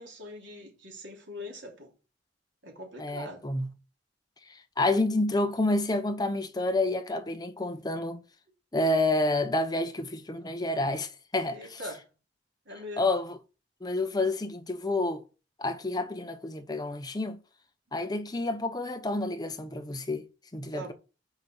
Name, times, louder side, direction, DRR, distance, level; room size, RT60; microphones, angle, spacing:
voice 1, 0.0-1.9 2.6-3.4 11.5-12.0 12.7-13.1 20.7-20.9, equal, 75° right, 3.1 m, -42 dB
voice 2, 3.0-3.7 4.5-8.2 8.7-11.8 13.0-13.4 13.8-15.2 15.6-17.4 17.9-20.9, left 2 dB, 20° left, 0.8 m, -29 dB
5.8 x 5.3 x 6.0 m
head